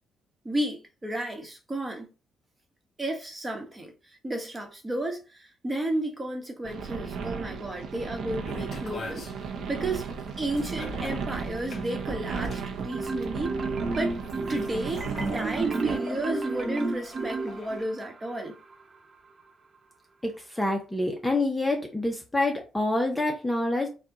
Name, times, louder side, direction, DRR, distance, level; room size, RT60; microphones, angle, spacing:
voice 1, 0.4-2.1 3.0-9.3 9.7-10.1 10.4-13.6 14.0-14.2 14.5-18.6, right 1 dB, 20° right, 1.3 m, -32 dB
sound 1, 6.6-16.0, right 5 dB, 70° right, 0.9 m, -35 dB
sound 2, 8.4-17.8, left 2 dB, 45° left, 2.2 m, -44 dB
Marimba xylophone, 12.9-18.1, right 3 dB, 40° right, 0.6 m, -31 dB
voice 2, 20.2-23.9, left 2 dB, 10° left, 0.9 m, -27 dB
4.4 x 2.5 x 3.8 m
cardioid pair, 90°, 0 cm